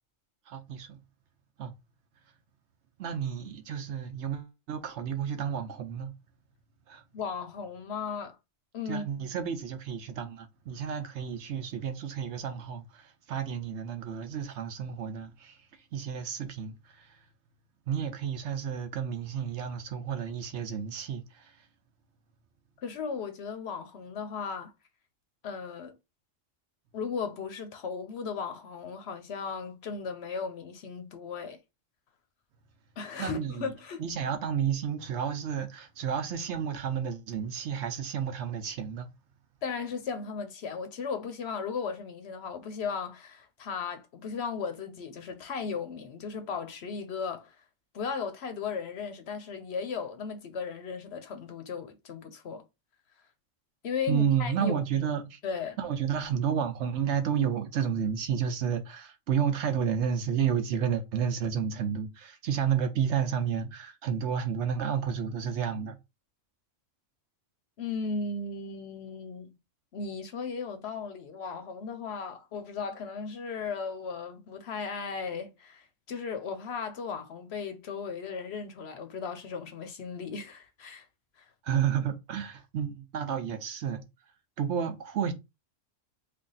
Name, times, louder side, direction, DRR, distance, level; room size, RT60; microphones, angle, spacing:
voice 1, 0.5-1.0 1.6-1.7 3.0-6.1 6.9-7.0 8.9-15.6 15.9-17.2 17.9-21.6 33.2-33.7 34.0-39.1 54.1-55.4 55.8-65.9 81.6-84.0 84.6-85.3, right 8 dB, 65° right, 0.8 m, -31 dB
voice 2, 7.1-8.4 8.7-9.0 22.8-24.7 25.4-25.9 26.9-31.6 33.0-34.1 39.6-47.6 47.9-52.6 53.8-55.1 55.4-55.8 67.8-69.6 69.9-81.1 81.4-81.5, left 5 dB, 65° left, 0.8 m, -36 dB
3.4 x 2.3 x 3.8 m
omnidirectional pair, 1.3 m